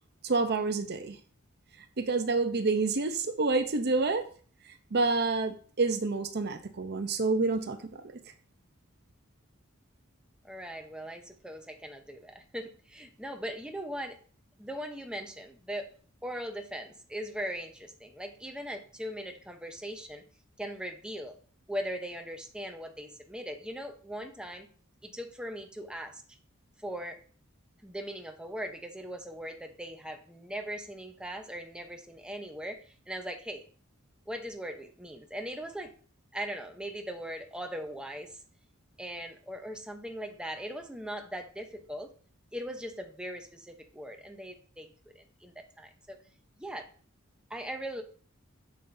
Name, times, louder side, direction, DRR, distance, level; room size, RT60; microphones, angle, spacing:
voice 1, 0.2-1.2 2.0-4.2 4.9-8.0, right 3 dB, 50° right, 0.7 m, -28 dB
voice 2, 10.4-14.2 14.6-15.9 16.2-20.2 20.6-21.4 21.7-24.7 25.0-26.2 26.8-27.2 27.8-33.6 34.3-35.9 36.3-38.4 39.0-42.1 42.5-44.9 45.1-46.2 46.6-46.9 47.5-48.0, equal, 5° right, 0.8 m, -39 dB
7.4 x 7.0 x 2.7 m
head